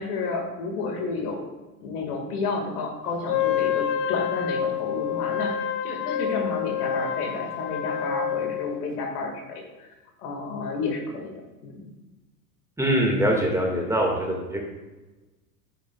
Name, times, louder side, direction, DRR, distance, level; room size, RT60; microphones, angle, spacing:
voice 1, 0.0-1.4 1.8-9.9 10.2-11.3 11.6-11.8, left 3 dB, 70° left, 2 dB, 1.9 m, -31 dB
Wind instrument woodwind instrument, 3.2-8.9, left 9 dB, 30° left, 0.4 m, -28 dB
voice 2, 12.8-14.6, right 1 dB, 5° right, 0 dB, 1.7 m, -23 dB
9.2 x 7.3 x 2.3 m, 1.1 s
hypercardioid pair, 80°, 47 cm